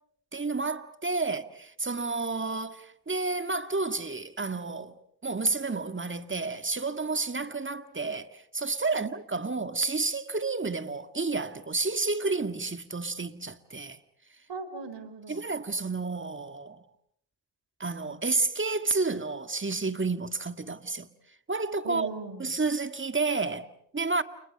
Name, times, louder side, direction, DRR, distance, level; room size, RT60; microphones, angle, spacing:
voice 1, 0.3-4.9 5.2-14.0 15.3-16.8 17.8-21.1 21.5-22.1 22.4-24.2, right 3 dB, 25° right, 1.9 m, -30 dB
voice 2, 14.5-15.5 21.8-22.6 24.2-24.3, right 4 dB, 70° right, 4.0 m, -39 dB
30.0 x 29.5 x 5.4 m
supercardioid pair, 45°, 44 cm